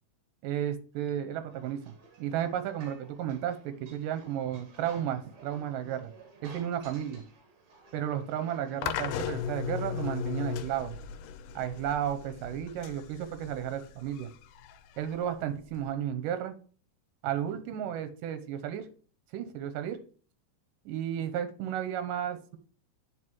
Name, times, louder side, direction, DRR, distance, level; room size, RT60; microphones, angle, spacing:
voice 1, 0.4-6.1 6.4-7.2 7.9-11.0 11.6-14.3 15.0-16.5 17.2-18.9 19.3-20.0 20.9-22.6, right 10 dB, 85° right, 9 dB, 2.4 m, -33 dB
sound 1, 1.5-9.4, right 4 dB, 60° right, 2.8 m, -55 dB
sound 2, 8.8-15.9, left 9 dB, 85° left, 2.2 m, -37 dB
9.8 x 4.5 x 3.0 m, 0.42 s
omnidirectional pair, 3.8 m